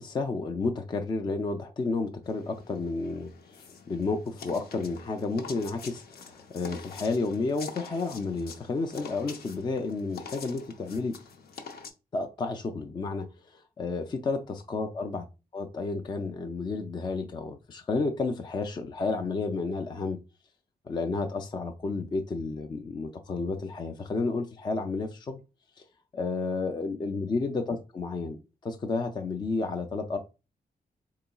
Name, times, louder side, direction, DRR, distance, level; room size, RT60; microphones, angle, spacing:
voice 1, 0.0-11.2 12.1-15.3 15.5-20.2 20.9-25.4 25.8-25.9 26.1-30.2, left 3 dB, 25° left, 0.3 m, -31 dB
sound 1, 2.2-11.9, left 5 dB, 70° left, 0.7 m, -46 dB
3.9 x 3.8 x 2.3 m
wide cardioid pair, 175°, 16 cm